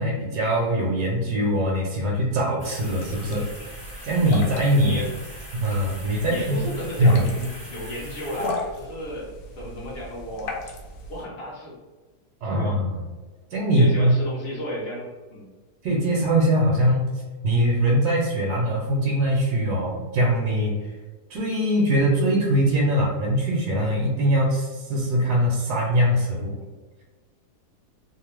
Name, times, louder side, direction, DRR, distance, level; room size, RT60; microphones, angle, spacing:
voice 1, 0.0-3.5 4.0-5.0 5.5-6.6 7.0-7.3 12.4-13.0 13.5-14.1 15.8-20.7 21.3-26.5, equal, 75° right, -3 dB, 1.1 m, -22 dB
sound 1, 2.6-8.5, equal, 5° left, 0.6 m, -42 dB
sound 2, 2.8-11.2, left 2 dB, 75° left, 1.1 m, -37 dB
voice 2, 6.3-10.6 11.1-11.8 12.4-12.8 13.7-15.5, left 1 dB, 45° left, -4 dB, 1.0 m, -34 dB
2.9 x 2.1 x 3.1 m, 1.3 s
omnidirectional pair, 1.7 m